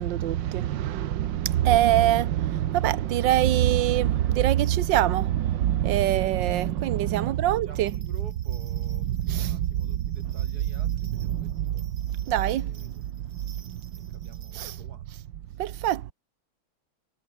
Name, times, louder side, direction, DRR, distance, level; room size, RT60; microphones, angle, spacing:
voice 1, 0.0-8.0 8.9-10.2 10.8-14.2 14.5-14.8 15.6-16.1, right 12 dB, 65° right, 1.6 m, -25 dB
voice 2, 7.1-12.0 12.6-13.2 13.9-15.1 15.5-15.6, right 4 dB, 45° right, 3.9 m, -51 dB
sound 1, 7.9-14.8, right 7 dB, 85° right, 3.1 m, -56 dB
omnidirectional pair, 2.2 m